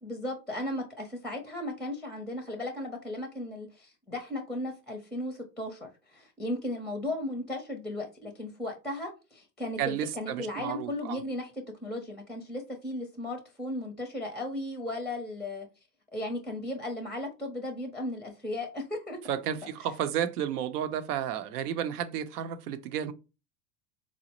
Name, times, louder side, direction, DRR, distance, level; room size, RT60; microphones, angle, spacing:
voice 1, 0.0-11.5 11.8-15.7 16.1-19.2, left 1 dB, ahead, 0.5 m, -36 dB
voice 2, 9.8-11.2 19.3-23.1, right 9 dB, 80° right, 0.7 m, -32 dB
4.0 x 2.0 x 2.9 m
hypercardioid pair, 100°, 46 cm